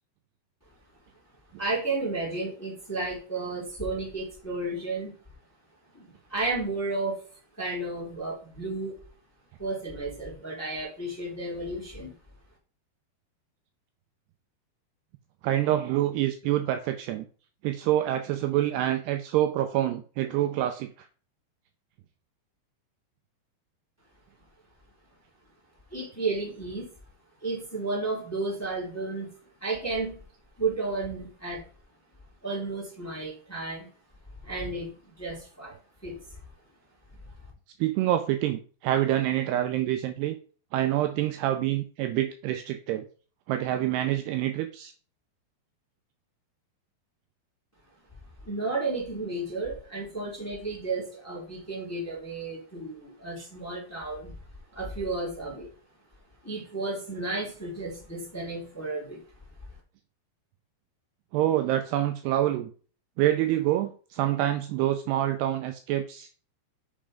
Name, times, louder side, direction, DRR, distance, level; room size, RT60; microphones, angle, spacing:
voice 1, 1.6-5.1 5.9-7.2 7.6-9.0 9.6-12.1 25.9-26.9 27.4-29.3 29.6-30.2 30.6-31.6 32.4-33.9 34.4-36.4 48.4-54.3 54.7-55.7 56.4-59.2, right 3 dB, 5° left, -4 dB, 2.3 m, -32 dB
voice 2, 15.4-17.3 17.6-20.9 37.8-40.4 40.7-43.0 43.5-44.9 53.4-53.5 61.3-62.7 63.2-66.3, right 13 dB, 80° right, 8 dB, 2.5 m, -26 dB
6.8 x 5.4 x 5.0 m, 0.40 s
omnidirectional pair, 5.1 m